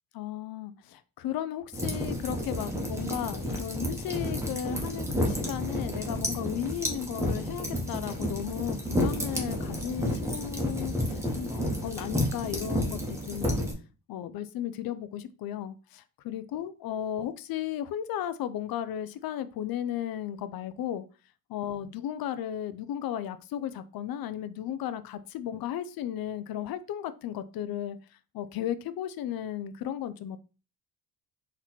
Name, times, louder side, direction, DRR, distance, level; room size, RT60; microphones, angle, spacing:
voice 1, 0.1-13.7 14.1-21.0 21.5-28.0 28.3-30.4, left 10 dB, 60° left, 0.5 m, -35 dB
sound 1, 1.7-13.7, equal, 5° right, 0.8 m, -31 dB
4.2 x 3.0 x 4.0 m
cardioid pair, 170°, 40 cm